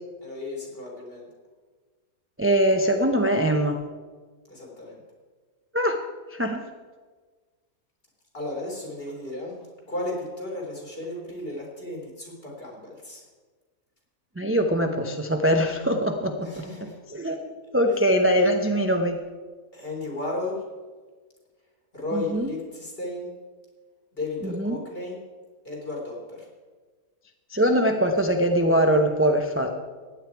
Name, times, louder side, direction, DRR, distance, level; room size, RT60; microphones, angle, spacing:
voice 1, 0.2-1.3 4.5-5.0 8.3-13.2 16.4-17.0 17.8-18.0 19.7-20.6 21.9-23.3 24.2-25.2 25.6-26.5, left 2 dB, 40° left, -3 dB, 3.7 m, -34 dB
voice 2, 2.4-3.8 5.7-6.0 6.3-6.6 14.4-16.6 17.1-17.4 17.7-19.2 22.1-22.5 24.4-24.8 27.5-29.7, equal, 15° right, 3 dB, 0.5 m, -22 dB
15.5 x 10.0 x 4.7 m, 1.4 s
omnidirectional pair, 1.5 m